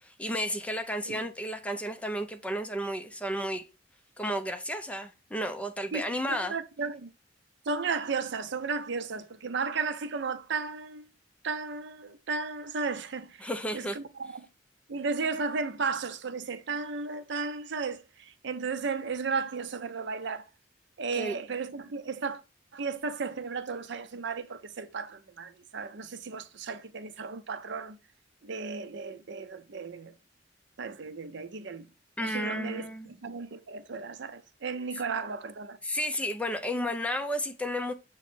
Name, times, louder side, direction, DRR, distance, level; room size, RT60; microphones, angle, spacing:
voice 1, 0.0-3.7 4.2-6.5 13.4-14.0 21.1-21.4 32.2-33.1 35.8-37.9, equal, 5° left, 0.6 m, -32 dB
voice 2, 5.9-7.1 7.7-11.1 11.4-14.5 14.9-20.5 21.0-22.4 22.7-28.0 28.4-30.1 30.8-31.9 32.2-35.8, right 4 dB, 70° right, 0.6 m, -34 dB
7.0 x 3.1 x 4.4 m
head